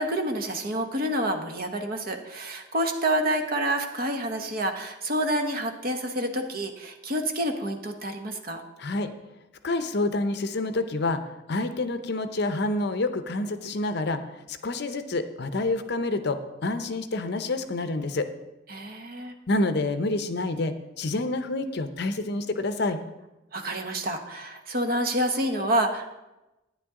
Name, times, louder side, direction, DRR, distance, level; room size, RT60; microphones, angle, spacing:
voice 1, 0.0-8.6 18.7-19.3 23.5-26.1, right 1 dB, 50° right, 5 dB, 1.0 m, -28 dB
voice 2, 8.8-9.1 9.6-11.2 11.5-14.2 14.5-18.3 19.5-23.0, left 2 dB, 55° left, 9 dB, 0.7 m, -28 dB
11.5 x 9.6 x 3.7 m, 0.99 s
head